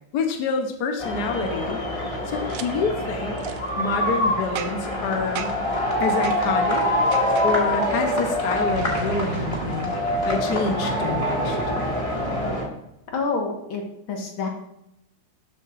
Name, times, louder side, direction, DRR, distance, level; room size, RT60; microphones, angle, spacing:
voice 1, 0.1-1.8 2.3-3.4 3.8-5.6 6.0-6.9 7.4-11.6, left 4 dB, 60° left, 4 dB, 1.4 m, -27 dB
sound 1, 1.0-12.6, left 1 dB, 20° left, 1.5 m, -25 dB
Boom, 2.5-2.7 3.4-3.6 4.6-5.0 5.4-5.7 6.2-6.4 7.1-7.5 8.7-11.4, right 8 dB, 75° right, 1.2 m, -34 dB
voice 2, 13.1-14.5, left 4 dB, 85° left, 1 dB, 2.2 m, -28 dB
12.5 x 7.1 x 2.5 m, 0.83 s
omnidirectional pair, 2.1 m